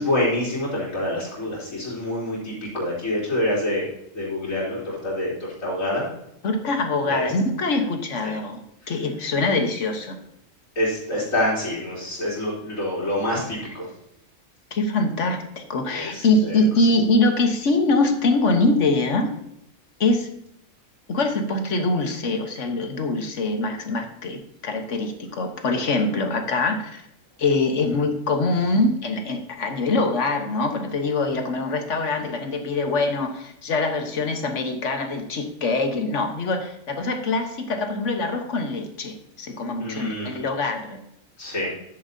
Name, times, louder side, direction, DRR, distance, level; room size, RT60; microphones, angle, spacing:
voice 1, 0.0-3.9 4.1-6.1 7.1-7.3 8.2-8.3 10.8-13.9 15.9-16.6 39.8-40.3 41.4-41.7, left 1 dB, 90° left, -7 dB, 3.8 m, -26 dB
voice 2, 6.4-10.2 14.7-19.3 20.0-20.3 21.1-27.0 27.4-41.0, left 2 dB, 65° left, 5 dB, 1.5 m, -23 dB
10.0 x 8.7 x 2.7 m, 0.80 s
omnidirectional pair, 1.4 m